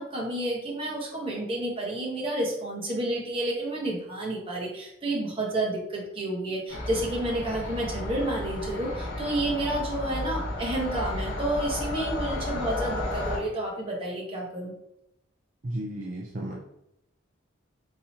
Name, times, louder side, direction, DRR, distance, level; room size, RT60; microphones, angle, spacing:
voice 1, 0.0-14.7, right 1 dB, 25° right, -3 dB, 1.3 m, -30 dB
sound 1, 6.7-13.4, left 1 dB, 65° left, 1.5 m, -33 dB
voice 2, 15.6-16.5, right 1 dB, 40° right, -1 dB, 0.5 m, -33 dB
4.2 x 3.9 x 2.9 m, 0.82 s
head